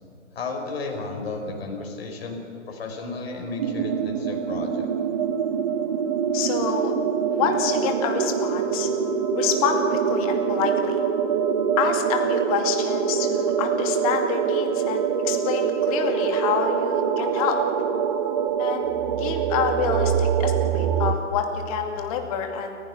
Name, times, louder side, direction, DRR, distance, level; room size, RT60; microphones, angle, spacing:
voice 1, 0.3-2.4 2.7-4.9, left 3 dB, 50° left, 2 dB, 5.2 m, -33 dB
sound 1, 3.6-21.1, right 7 dB, 30° right, 0.9 m, -24 dB
voice 2, 6.3-6.9 7.3-8.9 9.3-11.0 11.8-17.6 18.6-18.9 19.1-22.8, left 7 dB, 30° left, 4 dB, 2.5 m, -27 dB
sound 2, 7.8-18.5, right 2 dB, 5° right, 0.9 m, -34 dB
29.5 x 15.5 x 6.0 m, 2.8 s
hypercardioid pair, 145°, 38 cm